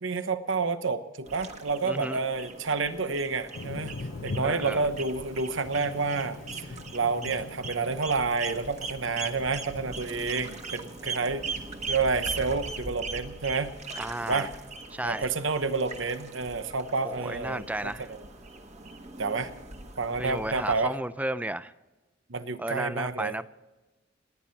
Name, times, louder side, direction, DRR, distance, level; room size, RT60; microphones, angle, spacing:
voice 1, 0.0-4.0 4.2-6.7 6.9-11.4 11.9-13.7 14.3-14.5 15.0-18.2 19.2-19.5 20.0-20.9 22.3-23.3, right 4 dB, 75° right, 1.0 m, -29 dB
sound 1, 1.2-20.8, right 3 dB, 35° right, 1.5 m, -40 dB
voice 2, 1.8-2.2 4.4-4.8 14.0-14.5 14.9-15.3 17.0-18.1 20.2-21.7 22.6-23.5, right 1 dB, 10° right, 0.5 m, -33 dB
Thunder, 3.5-12.3, left 3 dB, 80° left, 0.8 m, -42 dB
29.5 x 10.5 x 4.2 m
head